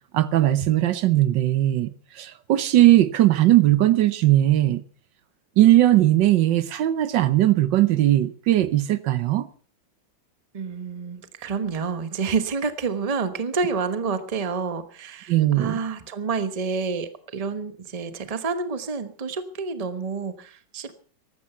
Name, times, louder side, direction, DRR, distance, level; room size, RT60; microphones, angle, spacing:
voice 1, 0.1-4.8 5.6-9.4 15.3-15.8, right 14 dB, 75° right, 1.5 m, -19 dB
voice 2, 10.5-21.0, right 5 dB, 25° right, 1.0 m, -29 dB
15.0 x 12.5 x 5.6 m
omnidirectional pair, 2.0 m